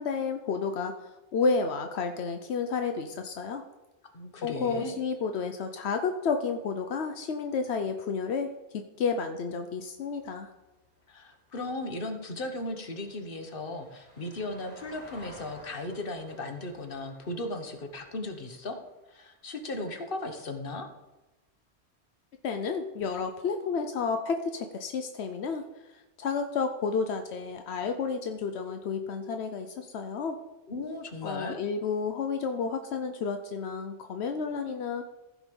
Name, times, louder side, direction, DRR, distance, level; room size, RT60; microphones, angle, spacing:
voice 1, 0.0-3.6 4.4-10.5 22.4-25.6 26.2-30.4 31.2-35.0, left 5 dB, 85° left, 6 dB, 1.0 m, -31 dB
voice 2, 4.1-4.9 11.1-18.8 19.1-20.9 30.7-31.6, left 2 dB, 60° left, 6 dB, 1.4 m, -36 dB
Vehicle, 9.8-20.2 22.5-22.6, equal, 10° left, 3.2 m, -55 dB
15.0 x 5.1 x 5.3 m, 1.1 s
omnidirectional pair, 1.1 m